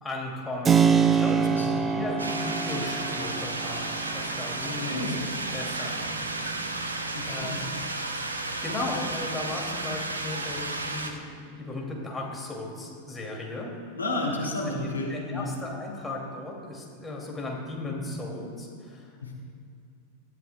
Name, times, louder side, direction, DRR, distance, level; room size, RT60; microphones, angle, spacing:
voice 1, 0.0-1.6 1.9-5.0 5.5-6.6 6.9-7.7 8.6-11.1 11.6-13.7 14.3-14.5 15.1-19.4, left 2 dB, 10° left, -2 dB, 2.6 m, -36 dB
Keyboard (musical), 0.6-9.2, right 7 dB, 20° right, 0.6 m, -28 dB
voice 2, 1.4-1.9 4.9-5.1 7.1-7.6 13.9-15.5 19.2-19.4, left 2 dB, 80° left, -1 dB, 2.2 m, -31 dB
sound 1, 2.2-11.1, right 2 dB, 75° right, 0.9 m, -33 dB
21.0 x 13.5 x 2.3 m, 2.4 s
figure-of-eight pair, 90°, 0 cm